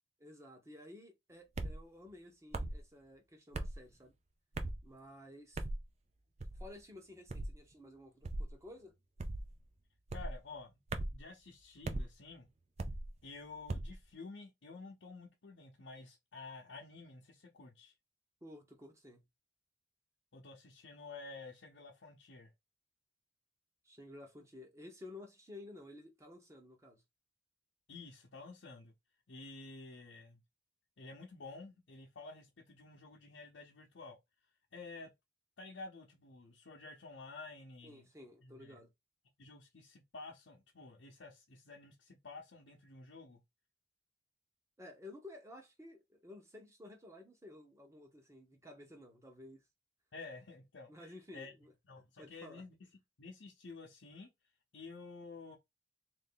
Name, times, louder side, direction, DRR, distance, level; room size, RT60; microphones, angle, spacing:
voice 1, 0.2-4.1 4.8-5.6 6.5-9.0 18.4-19.3 23.8-27.0 37.8-38.9 44.8-49.6 50.9-52.6, left 1 dB, 15° right, 0.9 m, -54 dB
sound 1, 1.6-1.8 2.5-2.8 3.5-3.8 4.5-4.8 5.6-5.8 6.4-6.7 7.3-7.6 8.2-8.5 9.2-9.5 10.1-10.4 10.9-11.2 11.8-12.1 12.8-13.1 13.7-14.0, right 2 dB, 35° right, 0.4 m, -38 dB
voice 2, 10.1-10.8 11.1-12.5 13.2-17.9 20.3-22.5 27.9-28.9 29.3-30.4 31.0-34.2 34.7-35.1 35.6-38.1 38.4-38.8 39.4-43.4 50.1-50.9 51.3-51.5 51.8-52.9 53.2-54.3 54.7-55.6, left 3 dB, 75° left, 0.8 m, -51 dB
3.2 x 2.7 x 3.7 m
head